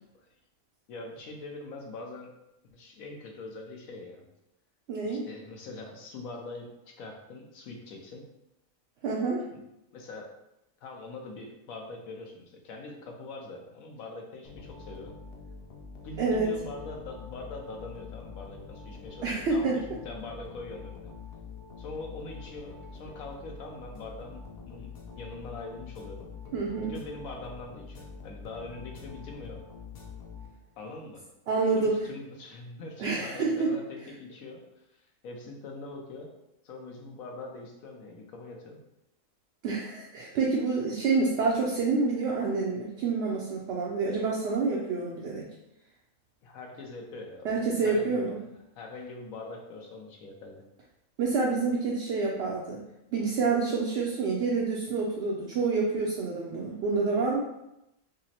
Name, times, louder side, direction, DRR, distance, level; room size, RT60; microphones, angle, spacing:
voice 1, 0.9-2.3 2.7-4.2 5.0-8.3 9.5-9.6 9.9-10.3 10.8-15.1 16.0-21.1 21.8-26.3 26.8-29.6 30.8-31.2 31.7-36.3 36.6-38.8 46.4-48.3 48.8-50.6, left 2 dB, 75° left, 1 dB, 1.1 m, -43 dB
voice 2, 4.9-5.2 9.0-9.4 16.2-16.5 19.2-19.8 26.5-26.9 31.5-31.9 33.0-33.7 39.6-45.5 47.4-48.4 51.2-52.8 53.1-57.4, right 4 dB, 65° right, -3 dB, 0.7 m, -28 dB
sound 1, 14.4-30.9, left 5 dB, 60° left, 0.6 m, -45 dB
5.1 x 2.0 x 2.8 m, 0.87 s
omnidirectional pair, 1.5 m